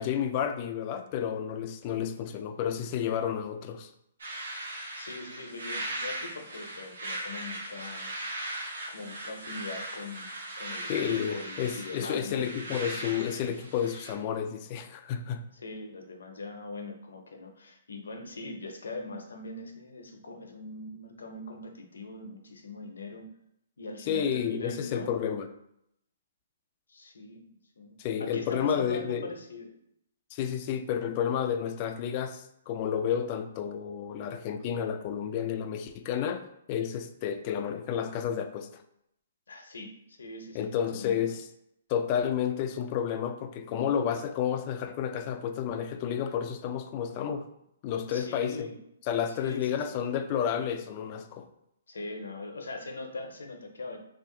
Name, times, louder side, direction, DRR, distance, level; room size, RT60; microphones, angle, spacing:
voice 1, 0.0-3.9 10.9-15.4 24.0-25.5 28.0-29.3 30.3-38.8 40.5-41.4 41.9-47.5 47.8-48.7 49.1-51.5, left 8 dB, 35° left, 8 dB, 0.3 m, -31 dB
sound 1, 4.2-14.1, right 1 dB, 85° right, 1.0 m, -39 dB
voice 2, 4.9-8.1 8.9-10.3 10.6-12.5 15.5-23.3 23.8-25.1 26.9-29.8 39.5-41.2 48.1-48.8 49.3-50.0 51.9-54.0, left 2 dB, 90° left, 3 dB, 0.7 m, -41 dB
2.9 x 2.4 x 3.7 m, 0.77 s
hypercardioid pair, 150°, 0 cm